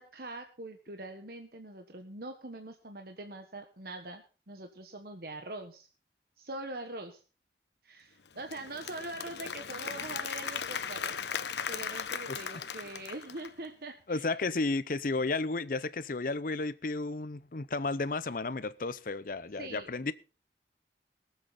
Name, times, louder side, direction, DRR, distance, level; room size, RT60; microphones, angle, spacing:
voice 1, 0.0-5.9 6.4-7.2 7.8-14.4 19.6-19.9, right 2 dB, 55° right, 1.3 m, -43 dB
Applause / Crowd, 8.3-13.7, left 7 dB, 75° left, 1.0 m, -38 dB
voice 2, 14.1-20.1, left 3 dB, 50° left, 0.7 m, -33 dB
22.5 x 8.0 x 4.1 m
head